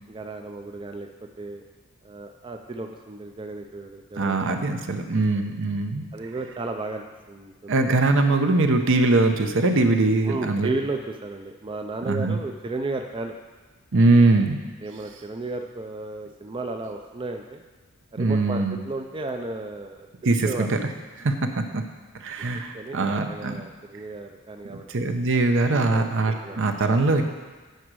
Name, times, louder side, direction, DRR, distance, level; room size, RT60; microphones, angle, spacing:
voice 1, 0.1-1.1 1.4-1.6 2.0-4.7 5.1-5.2 6.1-7.8 10.2-13.4 14.8-17.6 18.1-20.1 20.4-20.7 22.7-24.8 25.7-26.6, right 2 dB, 25° right, 4 dB, 0.4 m, -34 dB
voice 2, 4.2-6.0 7.7-10.7 12.1-12.4 13.9-14.6 18.2-18.8 20.2-20.8 21.2-21.8 22.2-23.5 24.9-27.2, right 2 dB, 60° right, 6 dB, 0.8 m, -21 dB
9.3 x 5.0 x 6.2 m, 1.3 s
head